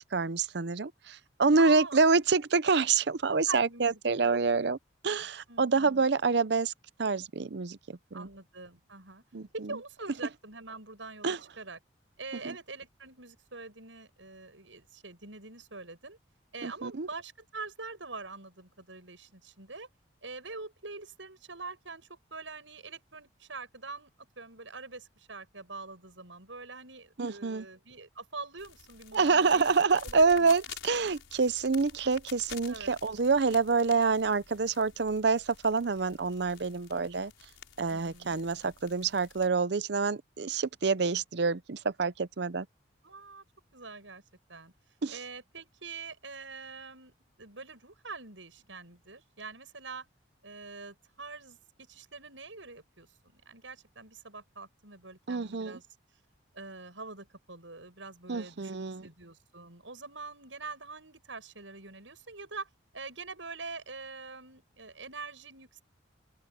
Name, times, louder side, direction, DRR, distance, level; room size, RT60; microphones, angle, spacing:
voice 1, 0.0-4.8 5.0-6.7 7.0-8.3 9.3-9.7 11.2-11.4 12.4-12.5 16.6-17.1 27.2-27.7 29.1-37.3 37.8-42.7 45.0-45.2 55.3-55.8 58.3-59.1, right 4 dB, 60° right, 0.6 m, -27 dB
voice 2, 1.6-2.1 3.5-4.0 4.3-4.4 5.5-6.0 8.1-9.2 9.5-11.8 12.2-16.2 16.5-19.9 20.2-29.6 30.0-30.6 32.7-32.9 37.9-38.4 43.0-43.4 43.7-44.2 44.5-44.7 45.1-50.1 50.4-53.1 53.3-55.8 56.5-58.8 59.0-65.8, right 3 dB, 80° right, 8.0 m, -44 dB
sound 1, 28.6-39.5, left 7 dB, 90° left, 5.6 m, -50 dB
open air
head